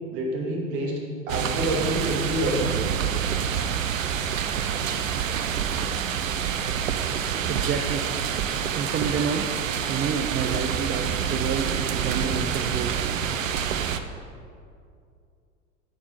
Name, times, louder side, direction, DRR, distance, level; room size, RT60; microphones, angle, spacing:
voice 1, 0.1-1.0 1.3-3.0, right 1 dB, 50° right, -1 dB, 2.5 m, -27 dB
sound 1, 1.3-14.0, right 8 dB, 75° right, 0.7 m, -27 dB
voice 2, 7.1-8.1 8.7-9.5 9.9-11.8 12.0-13.0, right 6 dB, 25° right, 4 dB, 0.6 m, -29 dB
10.5 x 7.2 x 5.4 m, 2.4 s
figure-of-eight pair, 80°, 39 cm